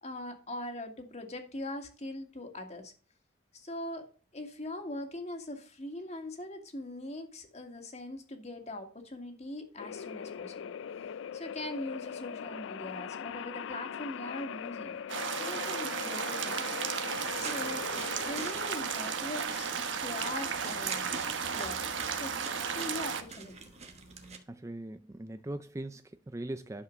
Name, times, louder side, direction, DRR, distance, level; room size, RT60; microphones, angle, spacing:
voice 1, 0.0-2.9 3.5-4.1 4.3-10.8 11.3-15.0 15.4-16.6 17.4-21.1 21.5-21.8 22.1-22.4 22.6-23.7, left 1 dB, 35° left, 1.9 m, -41 dB
sound 1, 9.8-24.3, left 7 dB, 80° left, 0.4 m, -42 dB
sound 2, 15.1-23.2, right 6 dB, 80° right, 1.2 m, -34 dB
sound 3, 17.1-24.4, right 5 dB, 35° right, 1.3 m, -45 dB
voice 2, 24.5-26.8, right 1 dB, 15° right, 0.4 m, -40 dB
11.0 x 4.8 x 6.3 m
head